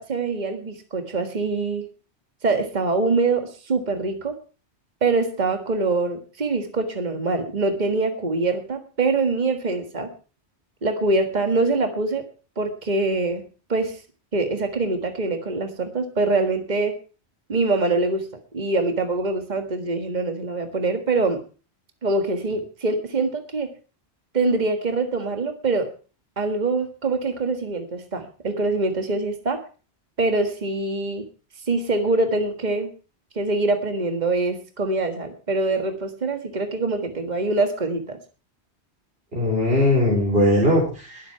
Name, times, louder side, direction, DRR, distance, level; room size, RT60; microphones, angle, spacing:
voice 1, 0.0-1.8 2.4-4.4 5.0-10.1 10.8-12.2 12.6-13.4 13.7-14.0 14.3-17.0 17.5-18.3 18.5-21.4 22.0-23.7 24.3-25.9 26.4-29.6 30.2-31.2 31.7-32.9 33.4-38.2, right 3 dB, 40° right, 6 dB, 1.8 m, -24 dB
voice 2, 39.3-41.3, left 1 dB, 60° right, -3 dB, 4.5 m, -20 dB
21.5 x 7.7 x 4.6 m, 0.36 s
omnidirectional pair, 1.2 m